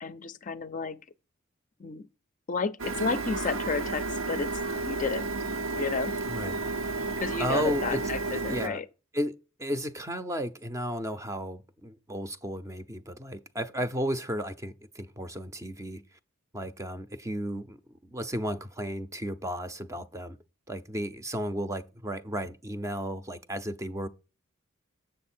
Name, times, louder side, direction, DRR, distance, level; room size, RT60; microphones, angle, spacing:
voice 1, 0.0-1.0 1.8-2.1 2.5-5.3 5.7-6.1 7.2-8.9, left 4 dB, 40° left, 0.5 m, -32 dB
Printer, 2.8-8.7, right 3 dB, 70° right, 0.8 m, -32 dB
voice 2, 6.3-6.6 7.4-8.0 8.3-8.8 9.1-16.0 16.5-17.8 18.0-20.4 20.7-24.1, equal, 15° right, 0.6 m, -34 dB
7.7 x 6.5 x 4.3 m
head